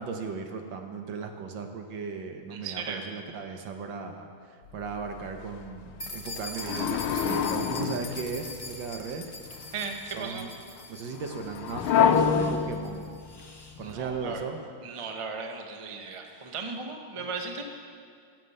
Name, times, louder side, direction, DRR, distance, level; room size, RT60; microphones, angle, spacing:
voice 1, 0.0-9.3 9.6-9.7 10.1-10.5 10.9-13.1 13.8-14.6 16.2-16.5, right 5 dB, 65° right, 5 dB, 1.6 m, -37 dB
voice 2, 2.5-3.0 9.7-10.5 13.8-14.4 14.8-17.6, right 4 dB, 35° right, 3 dB, 0.4 m, -36 dB
sound 1, 4.7-5.1 5.4-5.5 6.6-8.9 9.5-9.8 11.2-14.4, left 7 dB, 85° left, 1.5 m, -27 dB
sound 2, 6.0-13.8, left 2 dB, 30° left, 0.4 m, -42 dB
17.0 x 7.7 x 6.6 m, 2.2 s
omnidirectional pair, 2.3 m